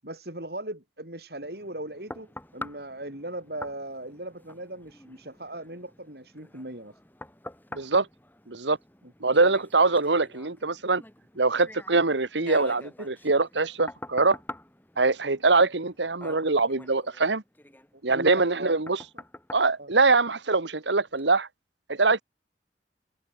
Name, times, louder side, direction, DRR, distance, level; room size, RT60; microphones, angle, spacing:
voice 1, 0.0-7.0 9.0-9.1 18.0-19.2 19.8-19.9, right 1 dB, 60° right, 7.5 m, -38 dB
sound 1, 1.4-20.7 21.2-21.3, left 1 dB, 10° left, 3.1 m, -46 dB
voice 2, 7.7-8.1 8.5-8.8 9.2-11.0 11.4-14.4 15.0-17.4 18.0-19.0 19.5-21.5 21.9-22.2, right 3 dB, 85° right, 1.6 m, -23 dB
open air
head